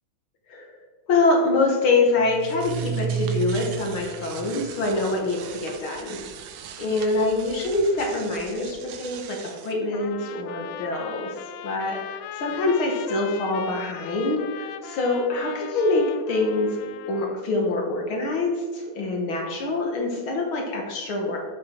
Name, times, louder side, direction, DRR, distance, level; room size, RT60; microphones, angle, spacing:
voice 1, 1.1-6.2 6.8-16.8 17.1-21.4, left 2 dB, 60° left, 0 dB, 1.4 m, -25 dB
sound 1, 2.2-9.7, right 8 dB, 75° right, 1.8 m, -34 dB
Trumpet, 9.9-17.4, left 10 dB, 80° left, 2.1 m, -39 dB
7.6 x 7.2 x 4.4 m, 1.4 s
omnidirectional pair, 3.8 m